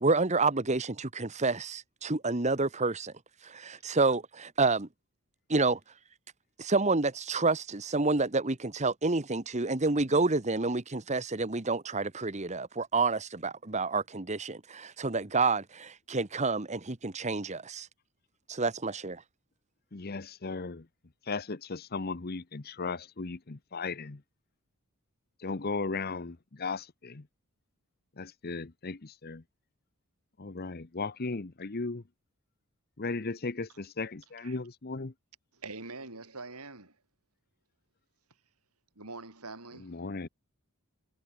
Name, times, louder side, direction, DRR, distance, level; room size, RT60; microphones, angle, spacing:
voice 1, 0.0-3.1 3.4-4.9 5.5-5.8 6.6-17.9 18.5-19.2, right 3 dB, 30° right, 1.3 m, -29 dB
voice 2, 19.9-20.8 21.3-24.2 25.4-27.2 28.2-29.4 30.4-32.0 33.0-35.1 39.9-40.3, left 3 dB, 45° left, 0.9 m, -36 dB
voice 3, 35.5-37.0 38.9-40.0, right 3 dB, 85° right, 6.8 m, -44 dB
head